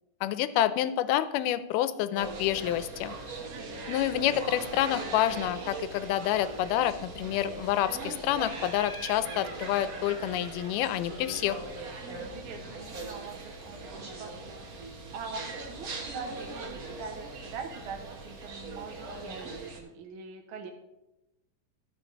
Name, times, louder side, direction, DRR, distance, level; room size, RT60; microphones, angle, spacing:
voice 1, 0.2-3.2 3.9-11.6, left 12 dB, 85° left, 14 dB, 2.1 m, -28 dB
sound 1, 2.1-19.8, right 3 dB, 85° right, 0.7 m, -41 dB
voice 2, 3.5-3.9 12.2-14.6 15.1-20.7, right 5 dB, 65° right, 3 dB, 1.3 m, -43 dB
Laughter, 8.4-11.7, right 3 dB, 45° right, 1.4 m, -45 dB
12.5 x 5.2 x 5.1 m, 0.94 s
omnidirectional pair, 3.7 m